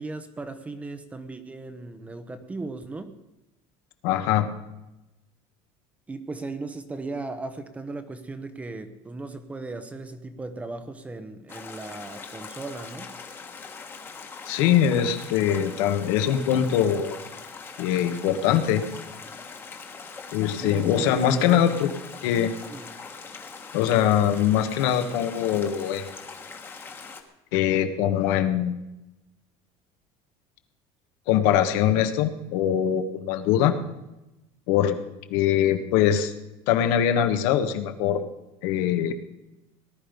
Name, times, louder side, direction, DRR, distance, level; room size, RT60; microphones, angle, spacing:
voice 1, 0.0-3.1 6.1-13.1 20.6-21.8 22.7-22.9, right 3 dB, 10° right, 10 dB, 0.9 m, -37 dB
voice 2, 4.0-4.5 14.5-17.2 17.8-18.8 20.3-21.9 22.2-22.5 23.7-26.1 27.5-28.8 31.3-33.8 34.7-35.0 35.3-36.3 36.7-38.2 38.6-39.1, left 10 dB, 75° left, 7 dB, 1.5 m, -22 dB
sound 1, 11.5-27.2, left 5 dB, 20° left, 1.3 m, -41 dB
18.5 x 11.5 x 5.3 m, 0.96 s
cardioid pair, 170°, 12 cm